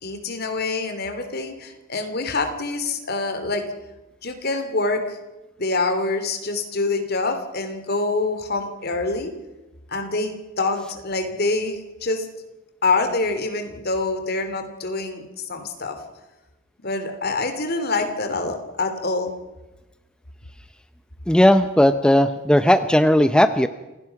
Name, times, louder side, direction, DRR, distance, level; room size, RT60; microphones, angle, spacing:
voice 1, 0.0-3.7 4.2-5.2 5.6-9.3 9.9-12.3 12.8-16.0 16.8-19.3, left 3 dB, 50° left, 8 dB, 2.8 m, -25 dB
voice 2, 21.3-23.7, left 1 dB, 5° left, 10 dB, 0.6 m, -16 dB
28.0 x 17.0 x 5.9 m, 1.1 s
head